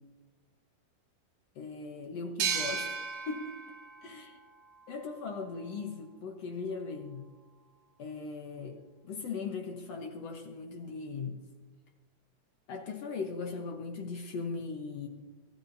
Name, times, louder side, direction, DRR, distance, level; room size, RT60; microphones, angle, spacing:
voice 1, 1.6-3.0 3.3-3.6 4.0-4.4 4.9-7.2 8.0-8.8 9.0-11.4 12.7-15.1, left 4 dB, 60° left, 3 dB, 1.8 m, -39 dB
sound 1, 2.4-5.8, right 6 dB, 60° right, 2.3 m, -37 dB
24.0 x 13.5 x 2.7 m, 1.3 s
omnidirectional pair, 4.1 m